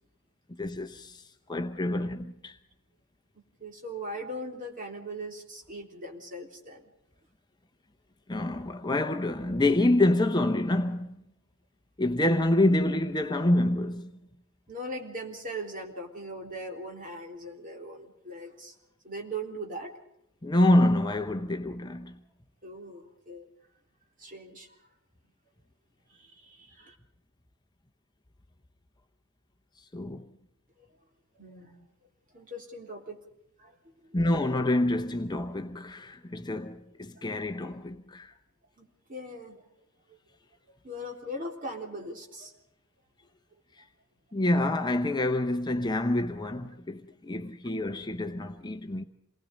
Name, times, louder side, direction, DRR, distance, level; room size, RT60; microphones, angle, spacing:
voice 1, 0.6-2.6 8.3-11.1 12.0-14.1 20.4-22.2 29.8-30.2 34.1-38.3 43.8-43.9 44.3-49.0, left 1 dB, 20° left, 0.8 m, -27 dB
voice 2, 3.6-6.8 14.7-18.7 19.0-19.9 22.6-23.5 24.2-24.7 26.1-27.0 30.8-30.9 31.4-31.8 32.3-33.2 33.6-34.2 36.3-36.4 37.2-37.3 38.8-39.6 40.7-42.5, right 1 dB, 35° right, 3.5 m, -40 dB
28.0 x 20.0 x 5.2 m
head